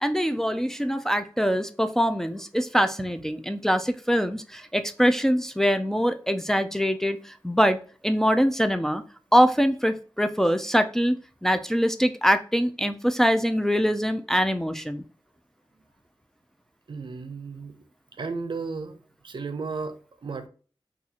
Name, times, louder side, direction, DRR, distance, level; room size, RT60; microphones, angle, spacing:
voice 1, 0.0-7.8 8.0-9.0 9.3-11.2 11.4-15.0, equal, 5° left, 0.3 m, -23 dB
voice 2, 16.9-17.7 18.2-20.5, right 4 dB, 70° right, 0.5 m, -34 dB
4.1 x 2.4 x 2.7 m
wide cardioid pair, 75°, 8 cm